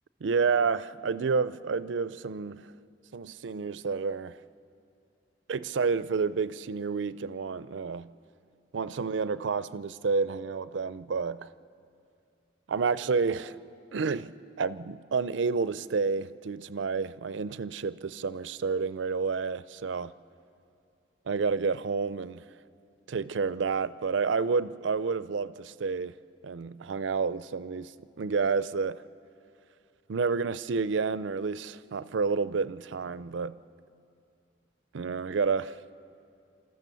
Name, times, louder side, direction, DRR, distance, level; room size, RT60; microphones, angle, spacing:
voice 1, 0.2-2.7 3.1-4.4 5.5-8.1 8.7-11.5 12.7-13.6 13.9-20.1 21.3-22.4 23.1-26.1 26.4-27.9 28.2-29.0 30.1-33.5 34.9-35.7, right 5 dB, 85° right, 0.5 m, -29 dB
27.5 x 13.5 x 6.9 m
head